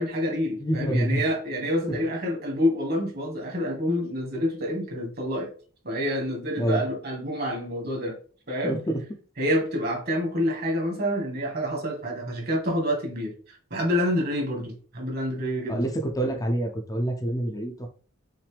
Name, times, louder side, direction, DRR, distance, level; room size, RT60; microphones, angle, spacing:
voice 1, 0.0-5.5 5.8-8.1 8.5-8.8 9.4-13.3 13.7-15.8, equal, 45° right, 0 dB, 1.7 m, -27 dB
voice 2, 0.6-1.2 6.6-6.8 8.6-9.0 15.7-17.9, right 1 dB, 15° left, 3 dB, 0.5 m, -26 dB
5.8 x 2.6 x 3.4 m, 0.40 s
head